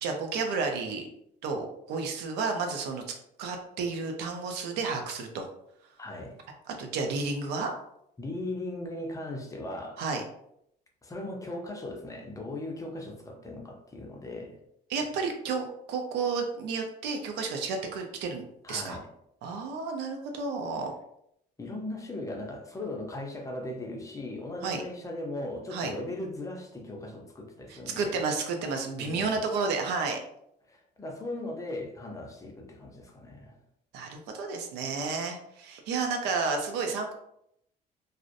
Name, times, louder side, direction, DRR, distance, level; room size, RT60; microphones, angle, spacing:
voice 1, 0.0-1.1 1.4-3.0 3.4-5.5 6.8-7.7 10.0-10.2 14.9-19.0 19.4-20.9 24.6-24.8 25.7-25.9 27.7-30.2 33.9-37.1, right 4 dB, 90° right, 4 dB, 0.5 m, -31 dB
voice 2, 6.0-6.4 8.2-10.0 11.0-14.6 18.6-19.1 21.6-28.2 29.0-29.4 30.7-33.6, left 2 dB, 20° left, 1 dB, 0.5 m, -38 dB
2.5 x 2.0 x 2.5 m, 0.76 s
cardioid pair, 110°, 17 cm